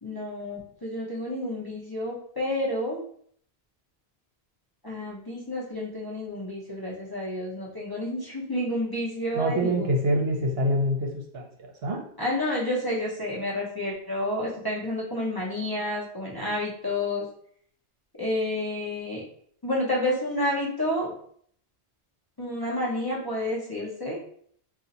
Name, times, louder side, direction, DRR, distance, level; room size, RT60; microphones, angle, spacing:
voice 1, 0.0-3.0 4.8-9.9 12.2-17.3 18.2-19.2 19.6-21.1 22.4-24.2, left 1 dB, 25° left, -6 dB, 0.7 m, -30 dB
voice 2, 9.3-12.0, equal, 70° right, 0 dB, 0.9 m, -26 dB
2.7 x 2.5 x 3.9 m, 0.62 s
omnidirectional pair, 1.1 m